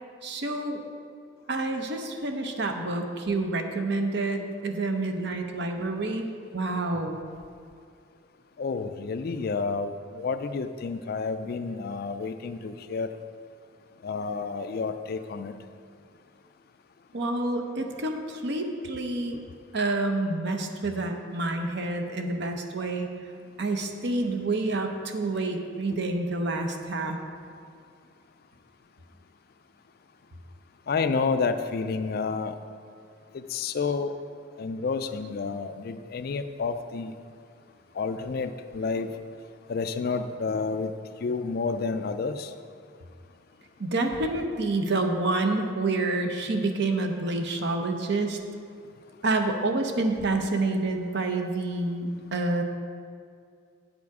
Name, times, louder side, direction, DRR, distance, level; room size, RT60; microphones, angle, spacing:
voice 1, 0.2-0.8 1.5-6.3 6.5-7.2 17.1-19.4 19.7-23.1 23.6-27.2 43.8-48.4 49.2-52.6, right 2 dB, 55° right, 4 dB, 0.7 m, -28 dB
voice 2, 8.6-13.1 14.0-15.5 30.9-32.6 33.3-34.1 34.6-37.1 38.0-39.1 39.7-40.9 41.2-42.5, left 4 dB, 50° left, 9 dB, 0.3 m, -30 dB
8.1 x 7.1 x 4.8 m, 2.3 s
head